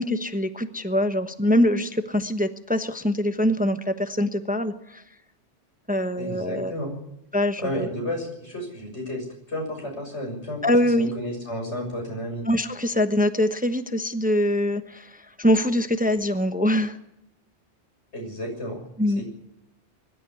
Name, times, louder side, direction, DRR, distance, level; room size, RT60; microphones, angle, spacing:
voice 1, 0.0-5.0 5.9-6.7 7.3-7.9 10.6-11.1 12.5-17.0 19.0-19.2, left 1 dB, 10° right, 9 dB, 1.0 m, -23 dB
voice 2, 6.2-6.9 7.6-12.5 18.1-18.8 19.2-19.3, equal, 90° left, 2 dB, 7.0 m, -32 dB
22.0 x 12.0 x 9.6 m, 0.82 s
omnidirectional pair, 1.1 m